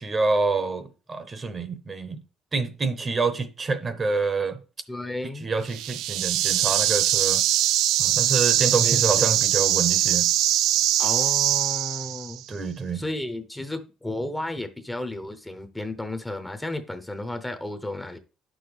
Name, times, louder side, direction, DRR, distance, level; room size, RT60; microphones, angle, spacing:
voice 1, 0.0-2.2 2.5-4.6 5.4-7.4 8.0-10.3 12.5-13.0, right 4 dB, 25° right, 0.8 m, -27 dB
voice 2, 4.9-5.5 8.8-9.3 11.0-12.4 12.9-18.2, left 1 dB, 5° left, 0.8 m, -33 dB
sound 1, 5.7-12.4, right 13 dB, 80° right, 0.4 m, -22 dB
9.0 x 6.2 x 3.4 m
cardioid pair, 130°, 0 cm